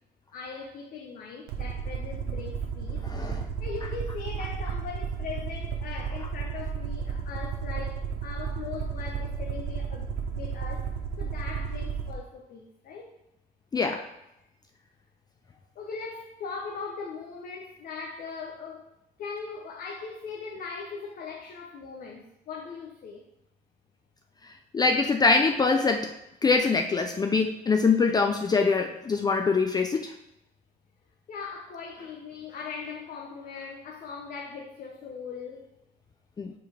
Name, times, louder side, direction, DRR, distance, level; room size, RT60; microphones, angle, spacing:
voice 1, 0.3-3.0 3.3-13.1 15.7-18.9 19.2-23.2 31.3-35.7, left 5 dB, 55° left, 0 dB, 0.9 m, -40 dB
Aircraft, 1.5-12.1, right 6 dB, 80° right, 1.0 m, -33 dB
voice 2, 3.0-3.4 13.7-14.0 24.7-26.1 26.4-30.1 36.4-36.5, left 4 dB, 25° left, 5 dB, 0.4 m, -24 dB
5.2 x 4.6 x 5.0 m, 0.86 s
cardioid pair, 110°, 17 cm